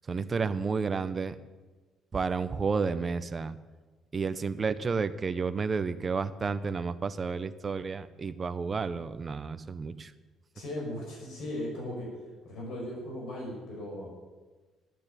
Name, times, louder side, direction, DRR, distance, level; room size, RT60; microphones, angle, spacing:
voice 1, 0.1-1.3 2.1-3.6 4.1-10.1, right 5 dB, 30° right, 12 dB, 0.8 m, -31 dB
voice 2, 10.5-12.1 12.4-14.1, left 1 dB, 75° left, -2 dB, 5.8 m, -37 dB
12.0 x 9.5 x 9.1 m, 1.3 s
cardioid pair, 130°, 0 cm